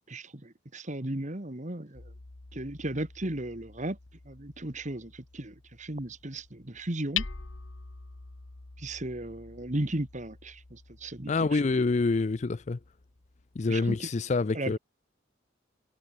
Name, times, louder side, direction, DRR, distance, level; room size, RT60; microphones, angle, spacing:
voice 1, 0.0-2.1 2.5-4.0 4.3-7.3 8.8-11.7 13.7-14.1 14.5-14.8, right 1 dB, 40° right, 1.8 m, -36 dB
Hammer, 1.9-13.7, left 7 dB, 80° left, 1.3 m, -44 dB
voice 2, 11.3-12.8 13.6-14.8, left 3 dB, 35° left, 0.4 m, -27 dB
head